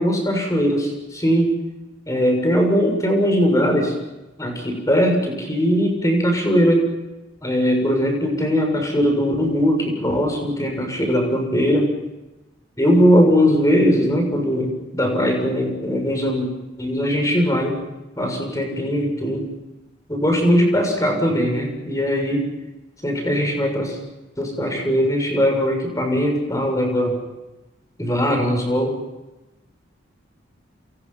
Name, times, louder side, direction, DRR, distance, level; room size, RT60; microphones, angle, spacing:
voice 1, 0.0-1.5 2.1-3.9 4.4-6.8 7.4-11.9 12.8-16.5 16.8-17.8 18.2-19.5 20.1-22.5 23.0-24.0 24.4-27.2 28.0-29.0, equal, 15° left, 2 dB, 6.8 m, -20 dB
29.0 x 28.0 x 5.8 m, 1.0 s
head